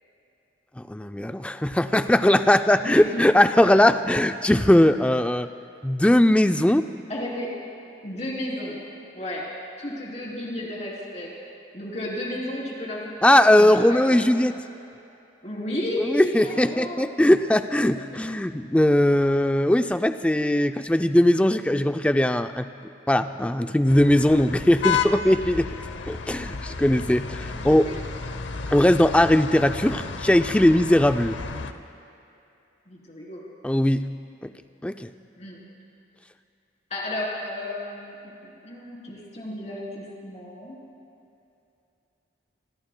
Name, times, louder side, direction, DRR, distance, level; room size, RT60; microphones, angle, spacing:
voice 1, 0.8-5.5 5.8-6.9 13.2-14.5 16.0-22.7 23.1-25.7 26.1-27.9 28.7-31.4 33.6-34.1 34.4-34.5 34.8-35.1, left 1 dB, 5° left, 9 dB, 0.3 m, -19 dB
voice 2, 2.8-3.2 7.1-7.5 8.0-8.8 9.1-9.5 9.8-11.3 11.7-14.4 15.4-17.1 27.5-28.0 32.9-33.4 35.4-35.6 36.9-40.8, left 1 dB, 35° left, -4 dB, 3.4 m, -33 dB
sound 1, 23.9-31.7, left 5 dB, 70° left, 0.7 m, -32 dB
26.5 x 20.5 x 2.2 m, 2.7 s
head